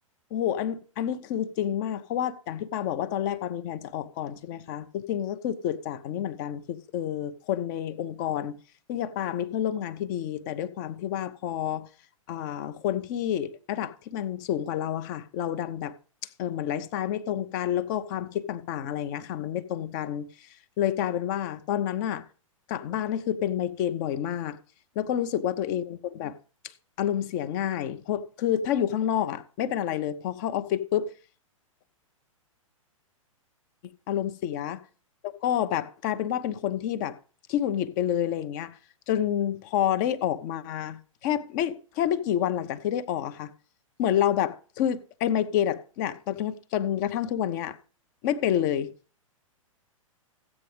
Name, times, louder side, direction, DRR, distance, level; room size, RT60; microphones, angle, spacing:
voice 1, 0.3-8.6 8.9-11.9 12.3-15.9 16.4-20.5 20.8-22.2 22.7-24.6 25.0-26.4 26.6-31.1 33.8-34.8 35.2-37.2 37.5-38.8 39.1-43.5 44.0-47.8 48.2-48.9, left 10 dB, 35° left, 0.8 m, -29 dB
15.0 x 8.4 x 3.3 m
figure-of-eight pair, 110°, 18 cm